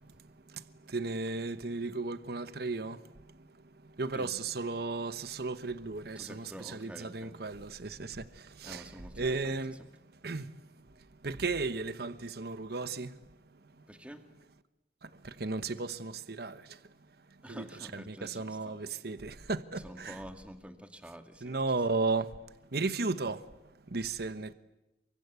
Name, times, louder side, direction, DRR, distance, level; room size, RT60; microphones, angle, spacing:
voice 1, 0.5-3.0 3.4-3.5 3.8-9.8 10.2-10.5 11.2-13.2 15.0-16.8 17.5-20.2 21.4-22.3 22.7-23.4 23.9-24.5, right 3 dB, 60° right, 1.1 m, -35 dB
voice 2, 6.2-7.4 8.6-9.6 13.9-14.2 17.4-18.7 19.8-21.6, equal, 5° right, 2.2 m, -48 dB
30.0 x 24.0 x 8.3 m
head